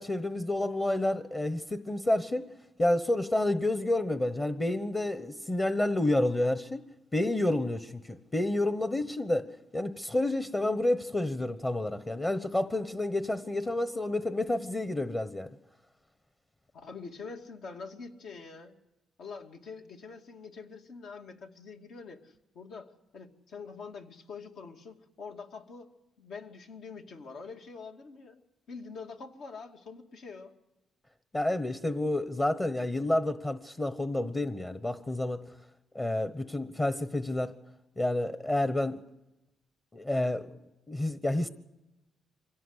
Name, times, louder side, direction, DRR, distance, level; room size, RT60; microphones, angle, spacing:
voice 1, 0.0-2.5 2.8-6.8 7.1-9.5 9.7-15.5 31.3-35.4 35.9-37.5 38.0-39.0 39.9-40.5 40.9-41.5, left 1 dB, 20° left, 1.1 m, -29 dB
voice 2, 16.7-18.8 19.2-25.9 26.2-28.4 28.7-30.5, left 4 dB, 70° left, 2.5 m, -45 dB
25.0 x 17.0 x 8.1 m
cardioid pair, 90°, 0 cm